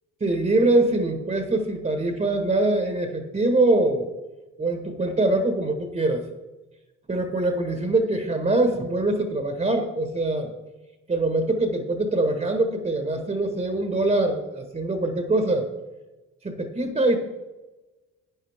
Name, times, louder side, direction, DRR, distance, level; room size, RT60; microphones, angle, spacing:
voice 1, 0.2-4.1 4.6-6.2 7.1-10.5 11.1-15.7 16.4-17.2, right 2 dB, 25° right, 5 dB, 1.5 m, -23 dB
12.0 x 8.9 x 3.6 m, 1.1 s
cardioid pair, 90°, 30 cm